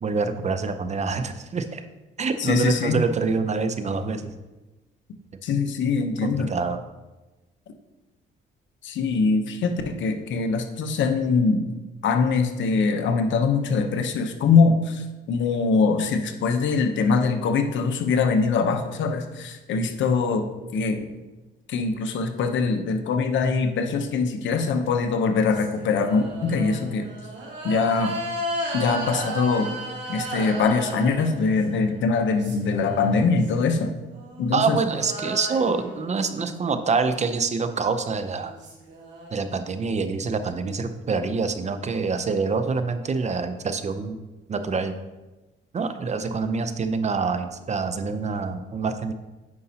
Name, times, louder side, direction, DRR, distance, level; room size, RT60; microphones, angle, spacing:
voice 1, 0.0-1.8 2.2-4.3 6.2-6.8 34.5-38.5 39.3-44.2 44.5-44.9 45.7-49.1, right 4 dB, 35° right, 9 dB, 0.6 m, -26 dB
voice 2, 2.4-3.0 5.4-6.5 8.8-11.6 12.0-20.5 20.7-21.0 21.7-27.1 27.6-28.1 28.7-29.7 30.1-33.9 34.4-34.8, left 4 dB, 70° left, 6 dB, 0.8 m, -23 dB
sound 1, 24.9-31.8 32.1-33.5 34.1-36.7 38.0-38.1 38.4-39.3, right 1 dB, 65° right, 2.0 m, -34 dB
9.5 x 5.3 x 2.8 m, 1.1 s
cardioid pair, 90°, 20 cm